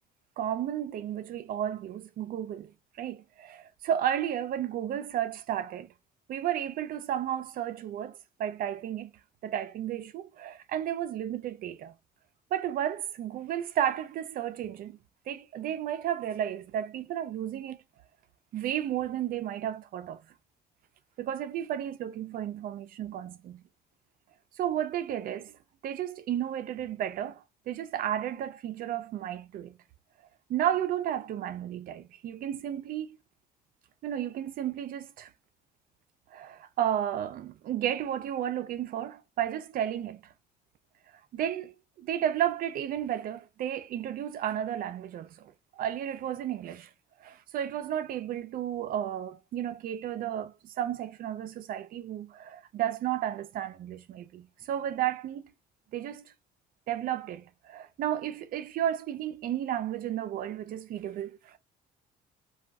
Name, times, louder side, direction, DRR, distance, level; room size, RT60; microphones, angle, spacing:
voice 1, 0.4-2.7 3.0-5.9 6.3-9.1 9.4-11.9 12.5-15.0 15.3-17.8 18.5-20.2 21.2-23.6 24.6-25.5 25.8-29.8 30.5-33.2 34.0-35.3 36.3-40.3 41.3-46.9 47.2-55.5 55.9-56.2 56.9-61.6, right 10 dB, 60° right, 0.5 m, -33 dB
2.5 x 2.3 x 3.3 m
cardioid pair, 110°, 17 cm